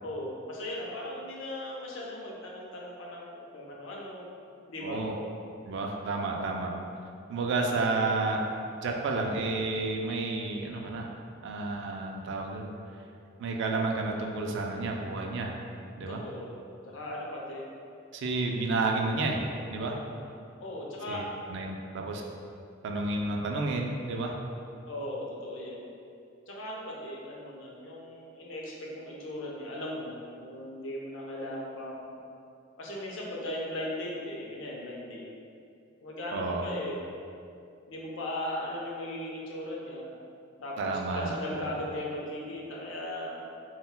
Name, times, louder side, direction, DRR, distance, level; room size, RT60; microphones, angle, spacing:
voice 1, 0.0-4.3 4.7-5.0 16.1-16.5 16.9-17.6 20.6-21.3 24.9-25.9 26.5-32.2 32.8-35.2 36.0-36.9 37.9-40.2 40.6-43.4, left 1 dB, 65° left, -3 dB, 0.5 m, -38 dB
voice 2, 4.8-5.2 5.7-6.7 7.3-8.4 8.8-11.1 11.4-12.7 13.4-15.6 16.0-16.2 18.1-20.0 21.1-21.2 21.5-22.2 22.8-24.4 36.3-36.6 40.8-41.6, right 3 dB, 60° right, 1 dB, 0.3 m, -31 dB
2.2 x 2.1 x 3.7 m, 2.4 s
head